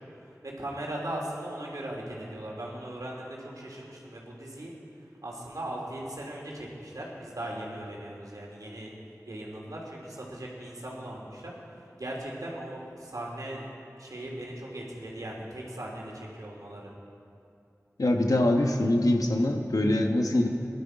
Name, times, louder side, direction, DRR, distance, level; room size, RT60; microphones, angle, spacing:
voice 1, 0.0-4.7 5.2-8.9 9.3-13.6 14.0-16.9, right 1 dB, 85° right, -3 dB, 2.9 m, -39 dB
voice 2, 18.0-20.5, left 1 dB, 85° left, 3 dB, 1.2 m, -24 dB
18.5 x 11.5 x 5.0 m, 2.5 s
wide cardioid pair, 40°, 6 cm